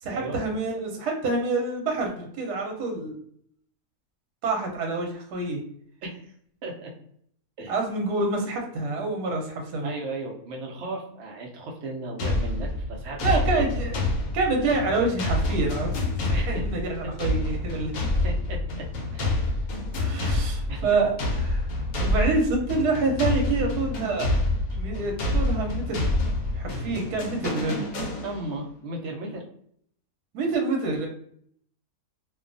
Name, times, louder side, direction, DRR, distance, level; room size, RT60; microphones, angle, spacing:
voice 1, 0.0-3.2 4.4-5.6 7.7-9.9 13.2-14.0 14.3-15.9 16.2-17.9 20.0-24.4 24.8-26.1 26.5-27.9 30.3-31.1, right 3 dB, 85° right, 1 dB, 1.2 m, -27 dB
voice 2, 6.6-6.9 7.6-7.7 9.8-13.6 16.3-16.7 17.9-18.9 19.1-19.5 20.7-20.9 28.2-29.4, right 2 dB, 60° right, 1 dB, 0.8 m, -36 dB
sound 1, 12.2-28.6, left 2 dB, 70° left, 1.0 m, -27 dB
2.6 x 2.3 x 2.5 m, 0.65 s
omnidirectional pair, 1.7 m